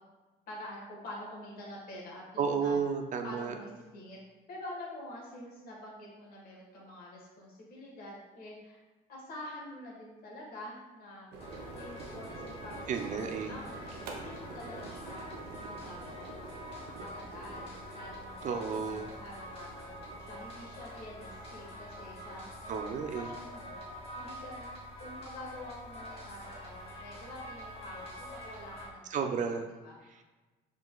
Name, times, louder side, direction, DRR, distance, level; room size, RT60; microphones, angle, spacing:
voice 1, 0.5-2.8 3.2-4.2 4.5-8.8 9.1-11.3 11.7-22.5 23.1-24.7 25.0-29.3 29.8-30.2, left 1 dB, 60° left, -3 dB, 1.5 m, -47 dB
voice 2, 2.4-3.5 12.9-13.5 18.4-19.1 22.7-23.3 29.1-29.7, right 6 dB, 45° right, 5 dB, 0.4 m, -32 dB
sound 1, 11.3-25.8, right 3 dB, 85° right, 0.6 m, -49 dB
sound 2, 11.4-28.9, equal, 35° left, 1.2 m, -46 dB
4.6 x 3.8 x 2.3 m, 1.2 s
cardioid pair, 110°, 17 cm